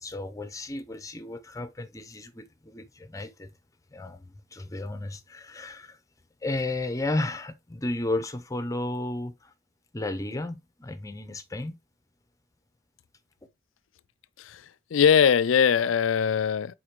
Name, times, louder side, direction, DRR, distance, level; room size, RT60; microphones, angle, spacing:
voice 1, 0.0-3.5 3.9-6.0 6.4-9.5 9.9-11.8, left 2 dB, 15° left, 0.8 m, -33 dB
voice 2, 14.9-16.7, left 7 dB, 85° left, 0.4 m, -21 dB
4.9 x 4.4 x 4.5 m
head